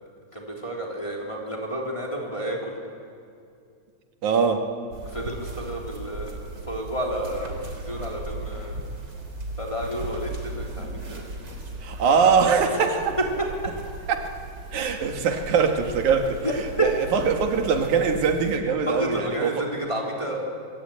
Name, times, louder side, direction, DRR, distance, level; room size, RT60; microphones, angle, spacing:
voice 1, 0.3-2.7 5.0-8.8 9.6-11.4 13.4-13.5 16.4-16.9 18.9-20.5, right 1 dB, 10° left, -1 dB, 3.5 m, -31 dB
voice 2, 4.2-4.7 11.8-13.2 14.1-14.3 14.7-16.4 16.8-19.6, right 5 dB, 85° right, 4 dB, 3.1 m, -22 dB
sound 1, 4.9-18.6, right 2 dB, 35° right, 3.7 m, -37 dB
24.5 x 23.0 x 8.8 m, 2.4 s
omnidirectional pair, 3.3 m